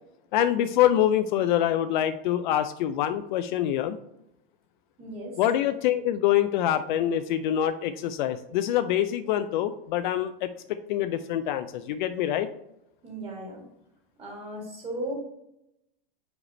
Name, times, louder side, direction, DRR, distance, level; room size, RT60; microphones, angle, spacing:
voice 1, 0.3-4.0 5.4-12.5, left 11 dB, 55° left, 10 dB, 0.4 m, -25 dB
voice 2, 5.0-5.4 13.0-13.6 14.2-15.1, right 1 dB, 20° right, -1 dB, 1.9 m, -36 dB
5.0 x 4.8 x 4.1 m, 0.81 s
supercardioid pair, 155°, 29 cm